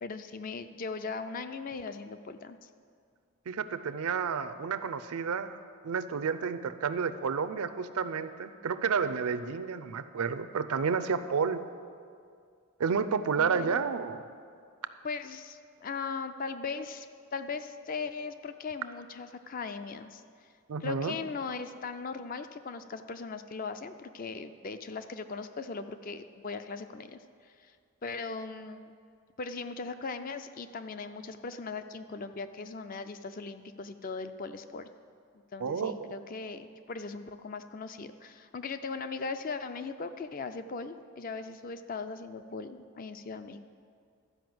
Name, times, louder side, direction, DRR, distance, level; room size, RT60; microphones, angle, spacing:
voice 1, 0.0-2.7 13.4-13.8 15.0-17.1 17.3-20.2 20.8-27.2 28.0-28.9 29.4-34.9 35.5-43.6, left 4 dB, 40° left, 10 dB, 0.4 m, -39 dB
voice 2, 3.5-11.6 12.8-14.2 20.7-21.1 35.6-36.0, right 5 dB, 85° right, 11 dB, 0.5 m, -31 dB
12.5 x 5.2 x 7.7 m, 2.2 s
head